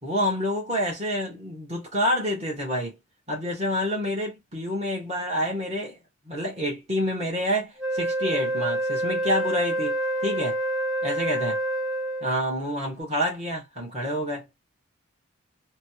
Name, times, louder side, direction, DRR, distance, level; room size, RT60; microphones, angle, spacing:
voice 1, 0.0-3.0 3.3-6.0 6.2-10.6 11.0-11.6 12.2-14.5, equal, 30° right, 1.7 m, -28 dB
Wind instrument woodwind instrument, 7.8-12.5, right 1 dB, 5° right, 0.8 m, -27 dB
3.9 x 2.4 x 3.0 m
head